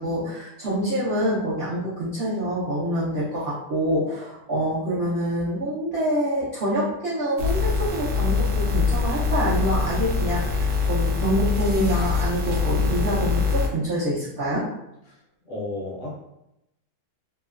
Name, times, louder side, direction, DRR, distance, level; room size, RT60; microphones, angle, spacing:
voice 1, 0.0-14.7, equal, 55° right, -9 dB, 0.7 m, -26 dB
sound 1, 7.4-13.7, left 4 dB, 75° right, 1.1 m, -24 dB
voice 2, 15.4-16.2, left 2 dB, 65° left, -4 dB, 0.8 m, -33 dB
2.9 x 2.1 x 2.4 m, 0.86 s
omnidirectional pair, 1.7 m